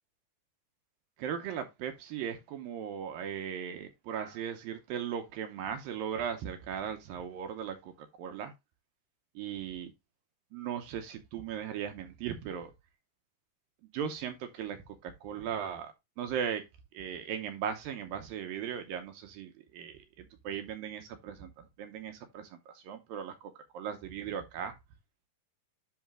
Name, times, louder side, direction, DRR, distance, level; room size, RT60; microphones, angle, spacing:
voice 1, 1.2-8.5 9.4-9.9 10.5-12.7 13.9-16.6 16.9-24.8, right 8 dB, 75° right, 2.4 m, -38 dB
10.5 x 3.7 x 3.6 m
omnidirectional pair, 4.6 m